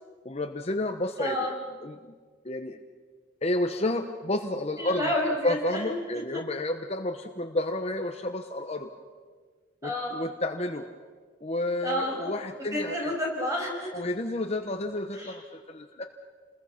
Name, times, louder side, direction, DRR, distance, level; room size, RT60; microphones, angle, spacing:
voice 1, 0.2-1.5 1.8-2.1 2.4-2.8 3.4-5.0 5.4-8.9 9.8-10.9 11.4-13.2 13.9-16.1, left 1 dB, 35° left, 6 dB, 0.9 m, -31 dB
voice 2, 1.2-1.5 4.8-5.9 9.8-10.1 11.8-12.4 12.7-13.9 15.1-15.4, left 1 dB, 15° right, -1 dB, 6.1 m, -30 dB
29.5 x 21.0 x 5.8 m, 1.5 s
head